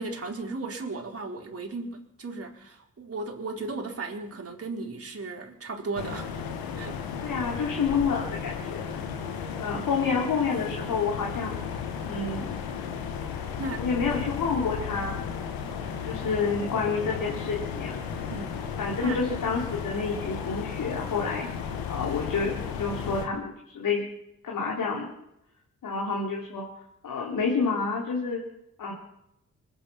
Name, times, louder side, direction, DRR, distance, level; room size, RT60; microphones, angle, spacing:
voice 1, 0.0-6.4 6.8-7.0 13.6-14.0 18.3-18.6 19.0-19.2, right 3 dB, 40° right, 0 dB, 4.6 m, -36 dB
sound 1, 6.0-23.3, left 7 dB, 85° left, 1.7 m, -34 dB
voice 2, 7.2-9.0 9.6-11.5 12.0-12.5 13.8-15.3 16.0-18.1 18.8-24.0 24.4-25.1 25.8-26.7 27.0-28.4 28.8-28.9, left 5 dB, 65° left, -1 dB, 3.5 m, -29 dB
26.0 x 9.5 x 5.9 m, 0.82 s
hypercardioid pair, 40°, 35 cm